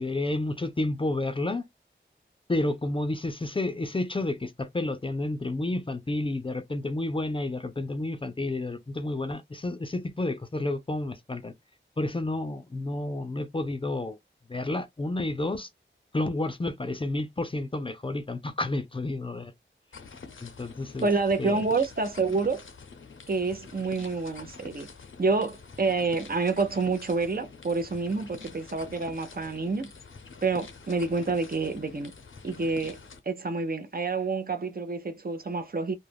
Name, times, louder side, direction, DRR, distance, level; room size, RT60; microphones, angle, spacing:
voice 1, 0.0-1.6 2.5-11.5 12.0-14.2 14.5-15.7 16.1-19.5 20.4-21.1 21.4-21.6, left 2 dB, 25° left, 0.4 m, -30 dB
sound 1, 19.9-33.2, left 4 dB, 85° left, 0.6 m, -47 dB
voice 2, 21.0-22.6 23.3-24.9 25.2-29.9 30.4-32.1 32.4-33.0 33.3-35.9, right 4 dB, 50° right, 0.5 m, -28 dB
2.3 x 2.0 x 3.3 m
wide cardioid pair, 65°, 20 cm